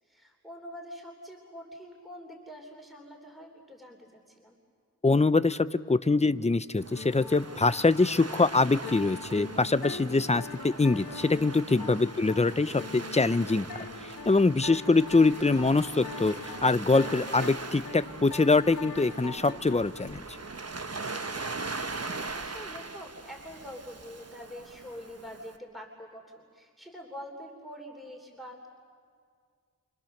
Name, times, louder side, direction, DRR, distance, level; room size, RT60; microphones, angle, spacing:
voice 1, 0.0-4.6 12.2-12.6 21.6-28.7, equal, ahead, 1 dB, 3.1 m, -45 dB
voice 2, 5.0-13.7 14.0-16.3 16.6-20.2, left 3 dB, 20° left, 14 dB, 0.7 m, -24 dB
Waves surf, 6.8-25.6, right 3 dB, 45° right, 1.1 m, -41 dB
sound 1, 6.9-20.1, left 4 dB, 85° left, 2.1 m, -43 dB
29.0 x 26.5 x 6.6 m, 2.1 s
wide cardioid pair, 45°, 36 cm